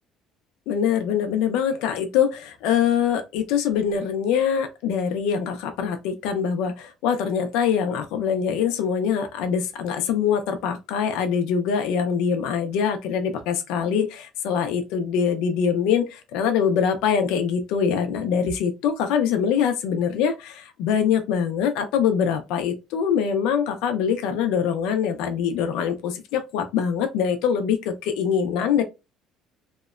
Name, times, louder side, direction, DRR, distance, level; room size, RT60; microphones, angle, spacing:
voice 1, 0.7-28.8, left 7 dB, 85° left, 0.4 m, -23 dB
2.8 x 2.1 x 2.3 m
cardioid pair, 160°, 0 cm